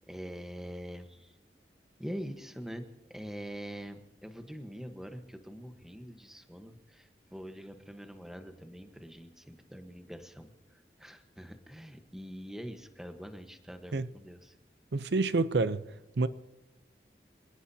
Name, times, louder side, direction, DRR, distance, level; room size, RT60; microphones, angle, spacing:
voice 1, 0.1-1.3 2.0-14.5, equal, 5° right, 1.2 m, -44 dB
voice 2, 14.9-15.8 16.2-16.3, right 3 dB, 75° right, 0.6 m, -27 dB
27.5 x 18.5 x 2.8 m
head